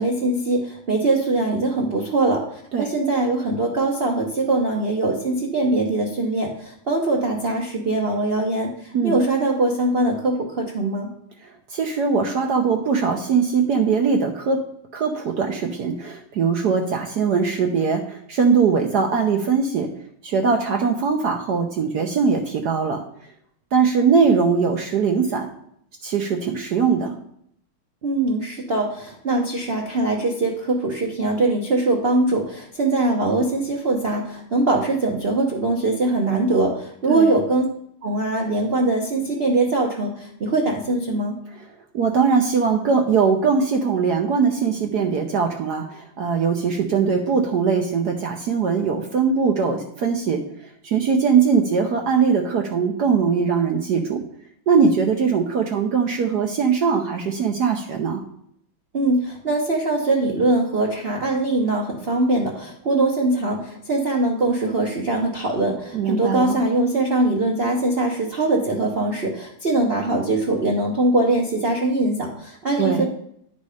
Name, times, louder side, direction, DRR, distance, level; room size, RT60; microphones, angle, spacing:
voice 1, 0.0-11.1 28.0-37.7 38.0-41.4 58.9-73.0, right 2 dB, 45° right, -1 dB, 0.8 m, -22 dB
voice 2, 11.7-14.6 14.9-19.9 20.2-23.0 23.7-25.5 26.0-27.2 37.1-37.3 41.9-50.4 50.8-54.2 54.7-58.2 65.9-66.6 72.8-73.0, right 5 dB, 65° right, 3 dB, 1.1 m, -21 dB
10.5 x 4.2 x 4.9 m, 0.70 s
omnidirectional pair, 2.3 m